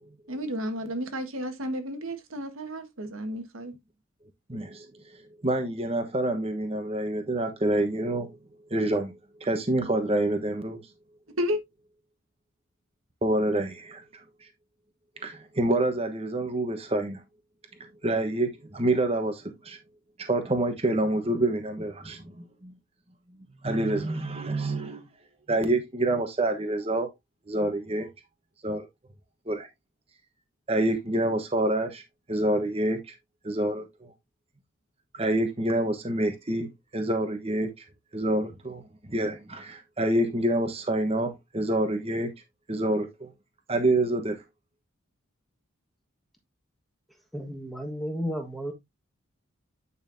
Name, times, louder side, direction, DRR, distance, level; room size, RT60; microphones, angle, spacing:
voice 1, 0.3-3.8 11.4-11.6, equal, 85° right, 1.6 m, -32 dB
voice 2, 4.5-4.9 5.4-8.4 8.7-9.1 9.4-10.8 13.2-14.0 15.2-17.2 18.0-19.8 20.2-22.7 23.6-25.0 25.5-27.1 27.5-28.1 28.6-28.9 29.5-29.7 30.7-32.0 32.3-33.0 33.4-33.9 35.2-37.7 38.1-42.3 42.7-43.3 43.7-44.4, right 1 dB, 30° right, 1.1 m, -27 dB
voice 3, 47.3-48.7, equal, ahead, 1.4 m, -33 dB
9.0 x 5.5 x 2.6 m
head